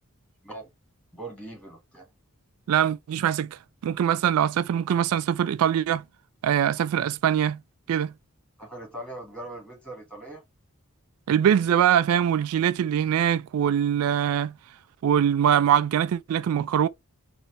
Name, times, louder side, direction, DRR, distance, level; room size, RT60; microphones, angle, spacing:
voice 1, 1.1-2.1 8.6-10.4, right 1 dB, 5° left, 1.9 m, -40 dB
voice 2, 2.7-3.6 3.8-6.0 6.4-7.6 7.9-8.1 11.3-14.5 15.0-16.9, right 9 dB, 80° right, 0.3 m, -23 dB
4.1 x 2.7 x 3.1 m
head